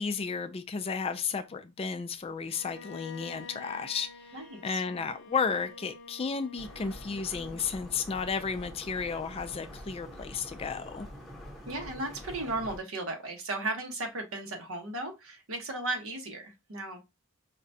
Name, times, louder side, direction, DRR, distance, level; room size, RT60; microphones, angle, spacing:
voice 1, 0.0-4.3 4.6-11.1, left 5 dB, 30° left, 0.3 m, -33 dB
Bowed string instrument, 2.5-7.5, left 5 dB, 60° left, 0.7 m, -49 dB
voice 2, 4.3-4.8 11.7-17.0, right 2 dB, 75° right, 1.0 m, -35 dB
sound 1, 6.6-12.8, equal, ahead, 0.8 m, -46 dB
4.8 x 2.2 x 2.6 m
head